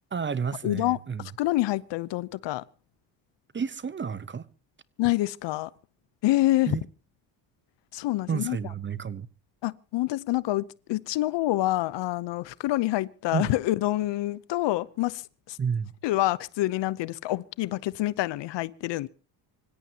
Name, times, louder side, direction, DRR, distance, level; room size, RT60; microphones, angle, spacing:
voice 1, 0.1-1.3 3.5-4.5 6.7-6.8 8.3-9.3 13.3-13.5 15.6-15.9, right 6 dB, 25° right, 0.9 m, -31 dB
voice 2, 0.6-2.6 5.0-5.7 6.2-6.8 7.9-8.6 9.6-15.2 15.5-15.6 16.0-19.1, left 17 dB, 65° left, 0.8 m, -27 dB
25.5 x 16.5 x 2.9 m
supercardioid pair, 90°, 48 cm